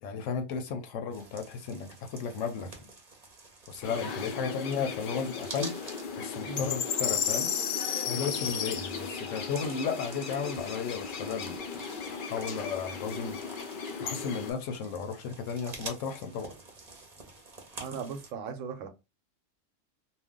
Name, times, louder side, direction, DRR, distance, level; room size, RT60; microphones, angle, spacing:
voice 1, 0.0-2.8 3.7-5.7 6.2-7.5 8.1-11.6 12.1-13.4 14.0-16.5, left 6 dB, 75° left, 0.9 m, -34 dB
sound 1, 1.1-18.3, right 3 dB, 40° right, 0.7 m, -49 dB
sound 2, 3.8-14.5, left 6 dB, 55° left, 0.6 m, -35 dB
voice 2, 17.8-18.9, right 6 dB, 90° right, 1.0 m, -38 dB
2.5 x 2.2 x 3.6 m
omnidirectional pair, 1.3 m